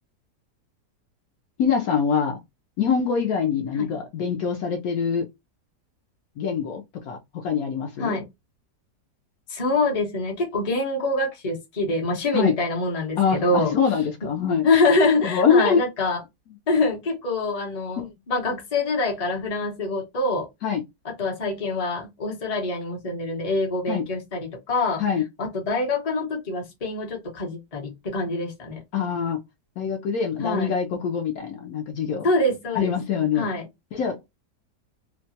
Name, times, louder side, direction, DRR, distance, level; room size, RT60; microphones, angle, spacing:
voice 1, 1.6-2.4 2.8-5.3 6.4-8.2 12.3-12.5 13.2-14.7 15.2-15.8 18.0-18.1 20.6-20.8 23.9-24.0 25.0-25.2 28.9-29.4 29.8-32.3 32.7-33.5 33.9-34.2, left 6 dB, 70° left, 1.0 m, -24 dB
voice 2, 9.5-13.7 14.2-14.3 14.6-16.2 16.7-20.5 21.0-25.0 25.4-28.8 30.4-30.7 32.2-32.9 33.3-33.7, left 2 dB, 30° left, 0.7 m, -25 dB
2.9 x 2.2 x 2.6 m
omnidirectional pair, 1.8 m